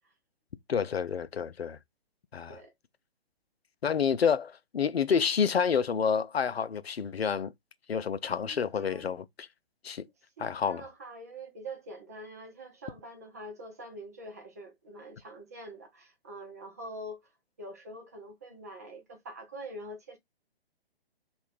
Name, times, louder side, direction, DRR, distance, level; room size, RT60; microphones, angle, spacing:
voice 1, 0.7-1.8 2.3-2.6 3.8-7.5 7.9-9.5 9.8-10.0 10.4-10.9, left 7 dB, 80° left, 0.5 m, -29 dB
voice 2, 8.5-9.1 10.4-17.2 17.6-20.2, right 1 dB, 15° right, 0.4 m, -45 dB
3.7 x 2.5 x 3.3 m
figure-of-eight pair, 130°, 31 cm